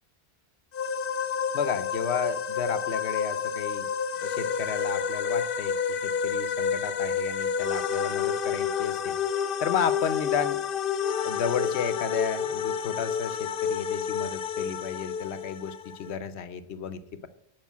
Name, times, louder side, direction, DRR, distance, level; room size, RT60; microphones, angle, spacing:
sound 1, 0.7-16.1, left 7 dB, 60° left, 0.8 m, -29 dB
voice 1, 1.5-3.9 4.2-9.2 9.6-10.6 11.2-17.3, left 7 dB, 90° left, 13 dB, 1.0 m, -32 dB
10.5 x 5.1 x 7.4 m, 0.78 s
omnidirectional pair, 1.1 m